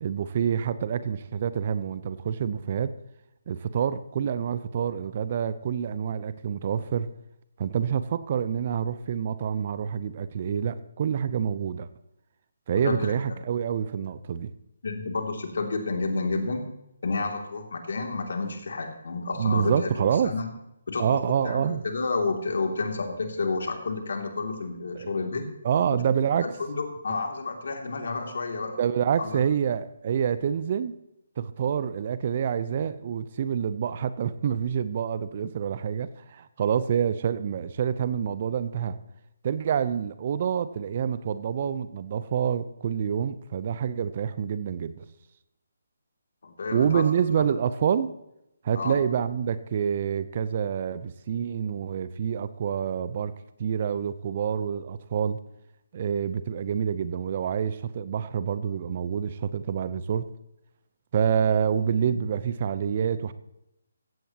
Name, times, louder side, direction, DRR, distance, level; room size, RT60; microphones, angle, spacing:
voice 1, 0.0-2.9 3.5-7.1 7.6-11.9 12.7-14.5 19.4-20.3 21.0-21.8 24.9-25.2 25.6-26.5 28.8-30.9 31.4-39.0 39.4-45.0 46.7-48.1 48.6-53.3 53.6-55.4 55.9-60.3 61.1-63.3, right 8 dB, 40° right, 14 dB, 0.8 m, -27 dB
voice 2, 12.8-13.1 14.8-16.6 17.0-19.9 20.2-20.5 20.9-21.2 21.4-25.5 26.4-28.8 29.2-29.4 46.4-47.0 47.4-47.5 48.7-49.0, left 3 dB, 60° left, 3 dB, 2.8 m, -30 dB
15.5 x 15.5 x 3.0 m, 0.83 s
figure-of-eight pair, 145°, 0 cm